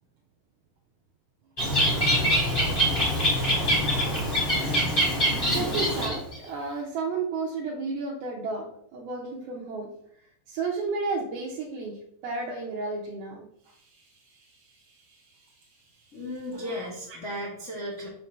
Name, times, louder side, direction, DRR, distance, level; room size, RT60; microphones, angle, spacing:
Bird, 1.6-6.3, equal, 20° left, 2.1 m, -24 dB
voice 1, 5.5-9.9 10.5-15.5 16.5-17.2, right 3 dB, 70° right, -2 dB, 2.8 m, -33 dB
voice 2, 16.1-18.1, equal, 60° left, -4 dB, 0.7 m, -35 dB
6.1 x 5.6 x 5.9 m, 0.71 s
omnidirectional pair, 4.8 m